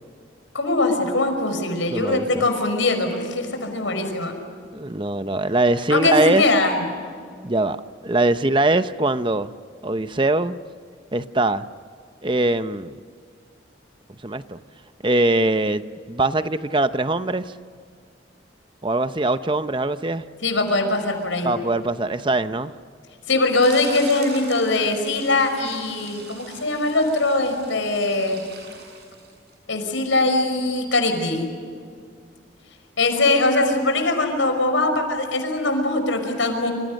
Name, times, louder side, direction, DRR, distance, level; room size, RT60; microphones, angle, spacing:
voice 1, 0.5-4.3 5.9-6.8 20.4-21.5 23.3-28.4 29.7-31.5 33.0-36.7, left 2 dB, 85° left, 5.7 m, -21 dB
voice 2, 1.9-2.5 4.7-6.4 7.4-7.8 8.0-9.5 9.8-10.6 11.1-11.7 12.2-13.0 14.2-14.6 15.0-15.8 16.1-17.5 18.8-20.2 21.4-22.7, right 2 dB, 25° right, 0.7 m, -22 dB
sound 1, 23.5-29.5, right 4 dB, 55° right, 7.8 m, -42 dB
28.0 x 27.5 x 6.5 m
head